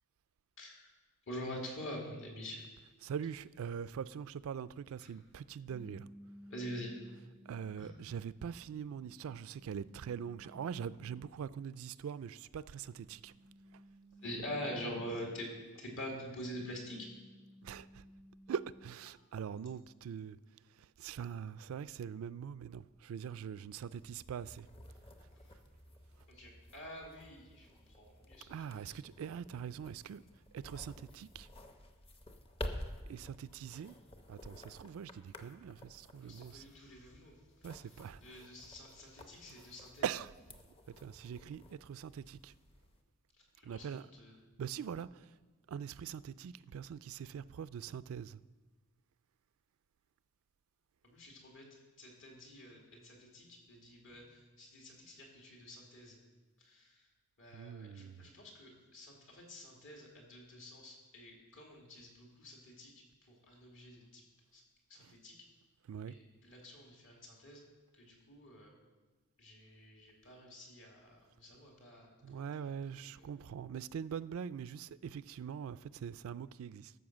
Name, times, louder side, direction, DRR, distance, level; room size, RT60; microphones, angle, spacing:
voice 1, 0.6-0.9 1.3-2.6 5.0-5.1 6.5-6.9 7.7-7.9 14.2-15.5 15.8-17.1 25.3-25.5 26.3-29.0 33.8-33.9 36.2-40.1 43.3-44.3 51.0-51.7 52.0-56.2 56.6-57.1 57.4-64.2 64.5-64.6 64.9-65.3 66.1-67.6 67.9-68.7 69.4-72.7 73.2-73.3, equal, 60° left, 2.4 m, -47 dB
voice 2, 3.0-6.1 7.5-13.3 17.6-18.0 18.5-20.4 20.8-24.7 28.5-30.2 30.5-31.5 33.1-34.0 34.3-36.6 37.6-38.4 40.0-40.3 40.9-42.5 43.6-44.1 44.6-45.3 45.7-48.4 57.5-58.3 65.0-65.1 65.9-66.1 72.2-76.9, right 7 dB, 65° right, 0.3 m, -43 dB
sound 1, 5.7-7.9 8.5-11.6 12.8-15.7 16.2-19.1, equal, 10° right, 0.5 m, -58 dB
sound 2, 23.9-43.0, left 1 dB, 25° left, 0.7 m, -51 dB
12.5 x 5.6 x 7.3 m
head